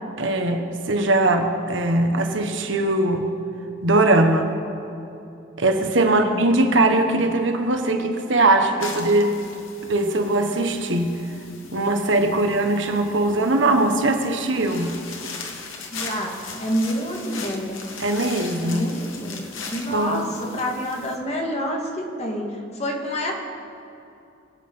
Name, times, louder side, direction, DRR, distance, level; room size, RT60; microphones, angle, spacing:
voice 1, 0.2-3.3 3.8-4.5 5.6-9.4 9.8-11.2 11.7-15.0 18.0-18.9 19.9-20.3, right 2 dB, 70° right, 5 dB, 1.5 m, -20 dB
voice 2, 6.1-6.5 15.9-17.8 18.6-23.3, equal, 35° left, 0 dB, 2.4 m, -28 dB
sound 1, 8.8-21.2, left 4 dB, 90° left, 2.0 m, -39 dB
25.0 x 9.1 x 5.7 m, 2.7 s
head